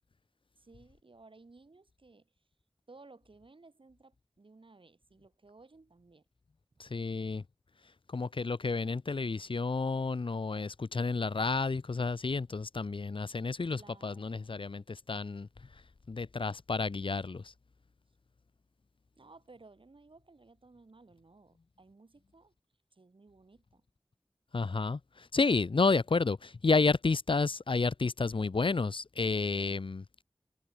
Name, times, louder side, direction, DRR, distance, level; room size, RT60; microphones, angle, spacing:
voice 1, 0.6-2.3 2.9-6.2 13.8-14.5 19.2-22.5 22.9-23.8, right 3 dB, 70° right, 4.5 m, -58 dB
voice 2, 6.8-7.4 8.1-15.5 16.1-17.5 24.5-30.2, left 4 dB, 65° left, 0.8 m, -31 dB
wide cardioid pair, 55°, 9 cm